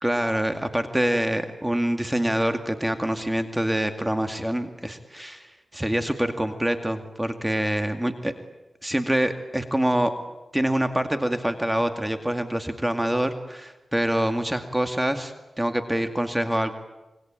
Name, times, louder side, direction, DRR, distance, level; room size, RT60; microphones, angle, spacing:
voice 1, 0.0-8.3 8.8-10.1 10.5-16.7, right 1 dB, 10° right, 7 dB, 2.3 m, -25 dB
26.5 x 23.5 x 9.1 m, 1.0 s
cardioid pair, 60°, 0 cm